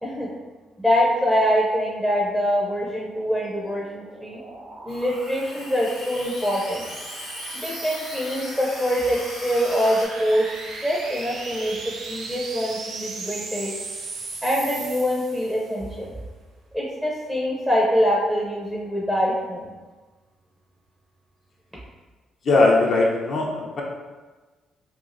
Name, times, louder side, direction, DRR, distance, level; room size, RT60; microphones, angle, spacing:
voice 1, 0.8-4.4 4.8-6.9 7.5-10.5 10.8-11.8 12.1-13.7 14.4-16.1 16.7-19.7, equal, ahead, -6 dB, 0.5 m, -24 dB
sound 1, 3.3-15.8, right 3 dB, 65° right, 0.5 m, -37 dB
Water tap faucet / Sink (filling or washing), 4.9-10.1, left 1 dB, 90° left, 0.9 m, -39 dB
voice 2, 22.4-23.8, left 2 dB, 55° left, -1 dB, 0.6 m, -19 dB
3.0 x 2.4 x 2.5 m, 1.3 s
cardioid pair, 95°, 0 cm